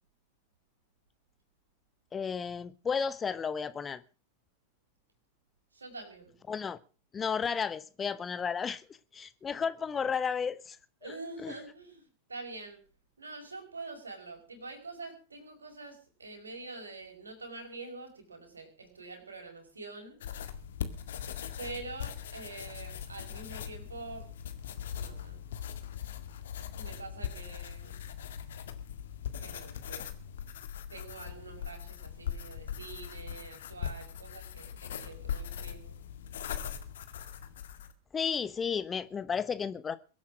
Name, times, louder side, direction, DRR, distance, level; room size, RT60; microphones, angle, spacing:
voice 1, 2.1-4.0 6.5-6.8 7.1-8.8 9.1-10.8 11.0-11.1 11.4-11.5 38.1-40.0, left 6 dB, 20° left, 1.0 m, -33 dB
voice 2, 5.7-6.4 11.0-12.8 13.2-20.2 21.6-24.3 24.9-25.4 26.8-28.1 29.4-30.1 30.4-30.5 30.9-35.9, right 3 dB, 75° right, 5.2 m, -46 dB
sound 1, 20.2-37.9, left 9 dB, 60° left, 1.9 m, -40 dB
22.5 x 8.6 x 6.2 m
figure-of-eight pair, 90°, 0 cm